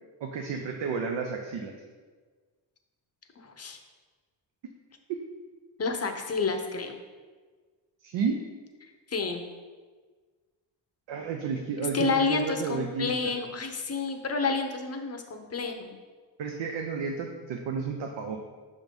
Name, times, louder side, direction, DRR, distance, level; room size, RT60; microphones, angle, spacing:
voice 1, 0.2-1.7 5.1-5.2 8.0-8.4 11.1-13.4 16.4-18.4, right 5 dB, 70° right, 2 dB, 0.7 m, -32 dB
voice 2, 3.4-3.8 5.8-7.0 8.8-9.4 11.9-16.0, left 4 dB, 35° left, 5 dB, 0.7 m, -30 dB
6.0 x 3.8 x 5.2 m, 1.4 s
cardioid pair, 100°, 46 cm